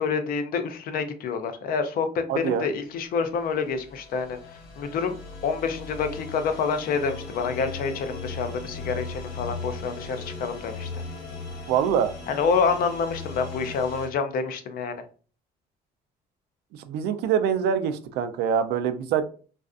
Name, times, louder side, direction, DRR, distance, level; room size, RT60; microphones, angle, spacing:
voice 1, 0.0-5.2 5.4-11.0 12.3-15.0, left 5 dB, 60° left, 9 dB, 0.5 m, -27 dB
voice 2, 2.3-2.7 11.7-12.1 16.7-19.3, right 8 dB, 75° right, 9 dB, 0.4 m, -24 dB
sound 1, 3.1-14.1, left 3 dB, 85° left, 0.9 m, -38 dB
2.5 x 2.3 x 2.4 m, 0.39 s
cardioid pair, 110°, 17 cm